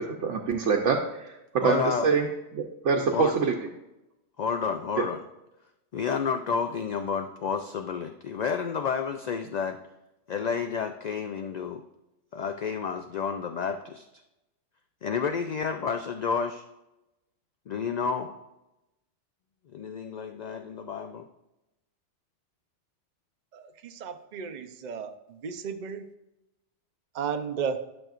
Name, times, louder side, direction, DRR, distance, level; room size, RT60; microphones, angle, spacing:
voice 1, 0.0-2.3 2.5-3.5 5.0-5.1, right 5 dB, 80° right, 1 dB, 1.0 m, -25 dB
voice 2, 1.6-2.1 3.1-3.3 4.4-5.2 5.9-9.8 10.3-11.8 12.3-14.1 15.0-16.6 17.7-18.3 19.7-21.2, left 6 dB, 65° left, 6 dB, 0.4 m, -30 dB
voice 3, 24.0-25.1 25.4-26.0 27.2-27.8, right 6 dB, 50° right, 7 dB, 0.6 m, -33 dB
12.0 x 6.2 x 2.5 m, 0.93 s
omnidirectional pair, 1.2 m